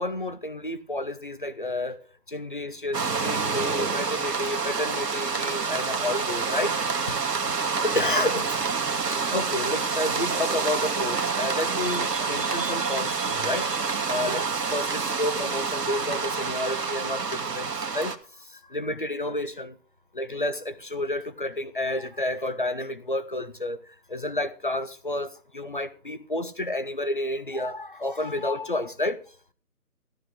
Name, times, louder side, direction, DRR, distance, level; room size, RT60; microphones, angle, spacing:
voice 1, 0.0-2.0 2.3-6.8 7.8-8.6 9.3-13.7 14.1-18.2 18.5-19.8 20.1-23.8 24.1-29.2, left 1 dB, 35° left, 0.7 m, -30 dB
sound 1, 2.9-18.2, right 5 dB, 90° right, 1.6 m, -28 dB
13.0 x 12.5 x 3.6 m
figure-of-eight pair, 165°, 47 cm